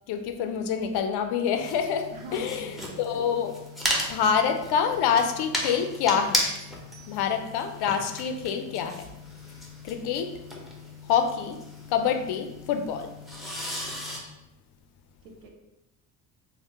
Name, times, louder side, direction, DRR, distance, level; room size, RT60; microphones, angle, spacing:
voice 1, 0.1-3.6 4.1-6.5 7.1-9.1 9.8-10.3 11.1-11.6 11.9-13.1, left 7 dB, 55° left, 6 dB, 0.5 m, -26 dB
sound 1, 1.6-14.2, left 1 dB, ahead, 0.7 m, -35 dB
voice 2, 2.1-3.2 15.2-15.5, right 2 dB, 90° right, 1 dB, 0.6 m, -42 dB
2.8 x 2.1 x 3.3 m, 0.95 s
hypercardioid pair, 55°, 48 cm